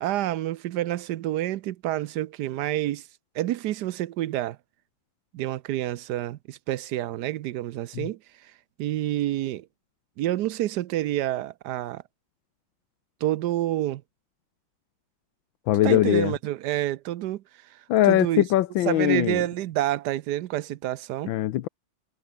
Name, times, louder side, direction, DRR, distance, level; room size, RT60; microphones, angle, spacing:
voice 1, 0.0-3.0 3.3-4.6 5.3-8.5 8.8-9.7 10.2-12.0 13.2-14.0 15.8-17.4 17.7-18.4 18.9-21.3, right 14 dB, 70° right, 1.1 m, -28 dB
voice 2, 15.7-16.3 17.9-19.4 21.2-21.7, left 14 dB, 85° left, 1.5 m, -21 dB
omnidirectional pair, 2.1 m